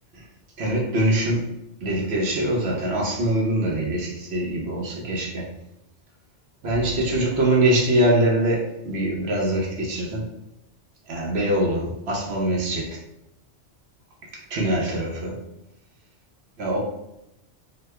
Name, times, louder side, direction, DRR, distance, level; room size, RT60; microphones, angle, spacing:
voice 1, 0.6-1.5 1.8-5.5 6.6-10.2 11.1-13.0 14.5-15.4 16.6-16.8, right 1 dB, 65° right, -2 dB, 1.0 m, -23 dB
3.1 x 2.2 x 3.2 m, 0.84 s
omnidirectional pair, 1.2 m